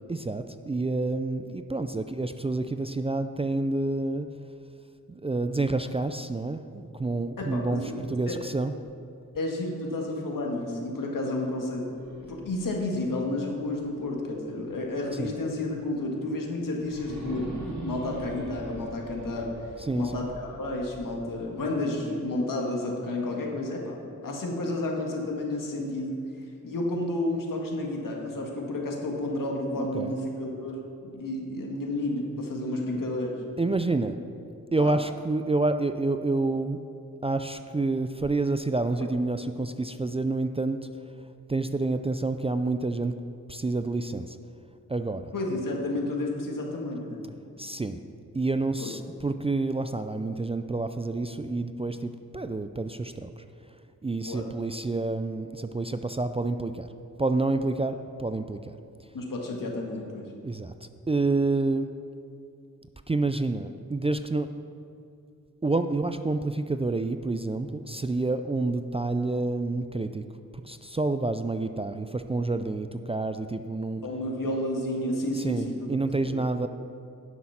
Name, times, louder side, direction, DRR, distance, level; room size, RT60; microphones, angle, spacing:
voice 1, 0.1-4.3 5.1-7.8 8.1-8.7 15.2-15.3 19.8-20.1 29.8-30.1 33.6-34.2 34.7-36.8 37.2-40.8 41.5-43.1 43.5-44.4 44.9-45.3 47.6-48.0 48.3-53.8 54.0-56.9 57.2-58.7 60.4-60.7 61.1-61.9 63.1-64.5 65.6-70.2 70.6-74.0 75.3-76.7, right 2 dB, 20° right, 9 dB, 0.3 m, -28 dB
voice 2, 7.4-8.0 8.3-8.4 9.3-11.9 12.2-17.6 17.8-19.5 19.9-24.0 24.2-26.1 26.6-33.4 34.8-34.9 45.3-47.2 48.8-48.9 54.2-54.5 59.1-60.3 74.0-75.9 76.2-76.4, left 2 dB, 75° left, 0 dB, 1.8 m, -31 dB
sound 1, 11.9-14.8 15.3-15.4 16.8-21.8, right 2 dB, 60° right, 2.7 m, -43 dB
11.0 x 6.5 x 5.8 m, 2.5 s
wide cardioid pair, 95°, 33 cm